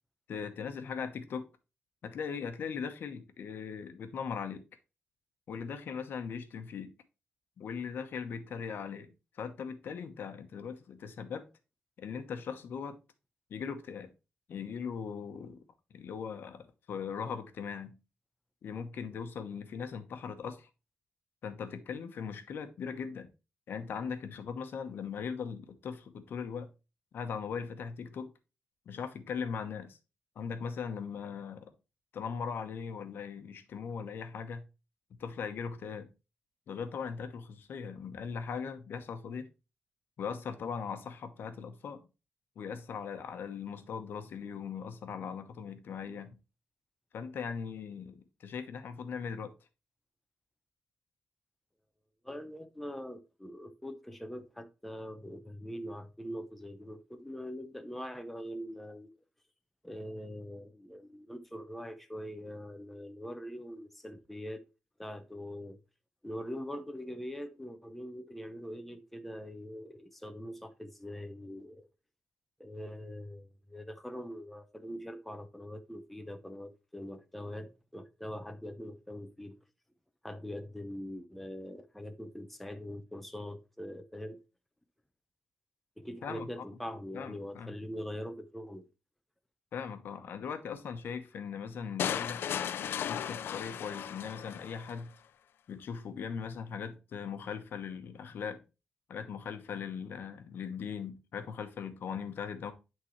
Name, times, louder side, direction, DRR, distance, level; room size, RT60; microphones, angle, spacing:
voice 1, 0.3-1.5 2.0-4.6 5.5-6.9 7.6-11.5 12.0-13.0 13.5-14.1 14.5-15.6 15.9-17.9 18.6-20.7 21.4-23.3 23.7-26.7 27.1-28.3 28.9-30.0 30.4-31.7 32.1-34.7 35.1-36.1 36.7-39.5 40.2-42.0 42.6-46.3 47.1-49.5 86.2-86.5 87.1-87.7 89.7-92.4 93.1-95.1 95.7-98.6 99.1-102.7, left 6 dB, 70° left, 0.9 m, -39 dB
voice 2, 52.2-59.1 59.8-64.6 65.0-65.8 66.2-71.9 72.6-79.6 80.2-84.4 86.0-88.9, equal, 5° left, 0.7 m, -43 dB
sound 1, 92.0-95.0, left 9 dB, 85° left, 0.4 m, -36 dB
11.5 x 3.8 x 3.1 m
wide cardioid pair, 155°, 4 cm